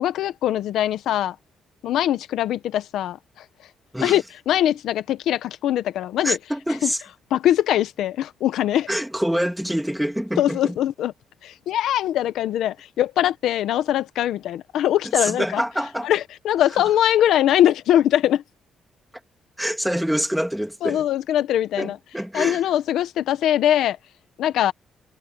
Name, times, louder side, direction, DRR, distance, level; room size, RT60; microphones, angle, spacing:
voice 1, 0.0-1.3 1.8-3.4 4.0-6.4 6.8-6.9 7.3-8.9 10.4-11.1 11.4-15.6 16.0-18.4 20.8-22.0 22.3-24.0 24.4-24.7, left 11 dB, 80° left, 0.9 m, -22 dB
voice 2, 6.2-7.0 8.9-10.8 15.2-16.1 19.6-21.1 21.8-22.6, equal, ahead, 2.7 m, -26 dB
cardioid pair, 160°, 0 cm